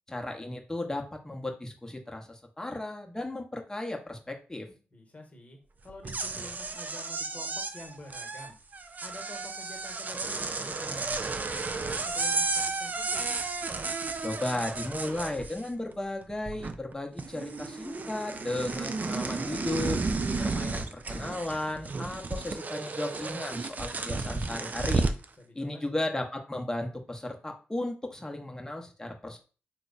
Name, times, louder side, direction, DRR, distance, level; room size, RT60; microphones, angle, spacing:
voice 1, 0.1-4.7 14.2-20.0 20.4-25.1 25.5-29.4, left 1 dB, 15° left, 2 dB, 0.8 m, -35 dB
voice 2, 4.9-8.6 9.0-13.2 25.4-26.1, left 1 dB, 35° left, 2 dB, 1.1 m, -48 dB
sound 1, 5.9-15.9 16.2-16.9 17.2-25.3, right 3 dB, 45° right, 0.4 m, -33 dB
3.1 x 2.1 x 3.9 m, 0.36 s
cardioid pair, 50°, 4 cm